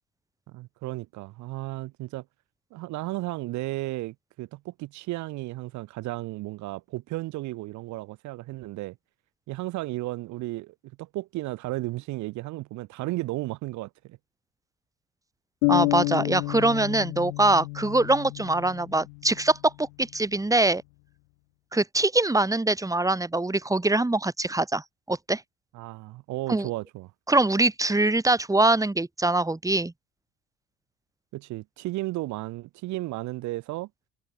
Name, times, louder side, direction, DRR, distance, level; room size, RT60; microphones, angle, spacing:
voice 1, 0.5-2.2 2.7-9.0 9.5-14.2 25.7-27.1 31.3-33.9, right 19 dB, 70° right, 2.7 m, -34 dB
sound 1, 15.6-19.4, left 35 dB, 85° left, 3.5 m, -29 dB
voice 2, 15.7-20.8 21.7-24.8 25.1-25.4 26.5-26.7 27.3-29.9, right 2 dB, 10° right, 3.8 m, -23 dB
supercardioid pair, 80°, 30 cm